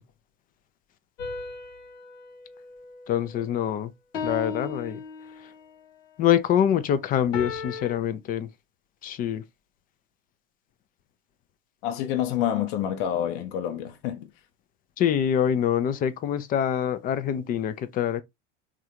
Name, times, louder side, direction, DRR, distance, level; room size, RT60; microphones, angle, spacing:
sound 1, 1.2-3.6 4.1-5.7 7.3-8.0, left 5 dB, 80° left, 0.9 m, -36 dB
voice 1, 3.1-3.9 4.2-5.0 6.2-8.5 9.0-9.4 15.0-18.2, left 9 dB, 25° left, 0.3 m, -25 dB
voice 2, 11.8-14.3, left 10 dB, 55° left, 0.8 m, -28 dB
3.2 x 2.5 x 2.8 m
hypercardioid pair, 85°, 38 cm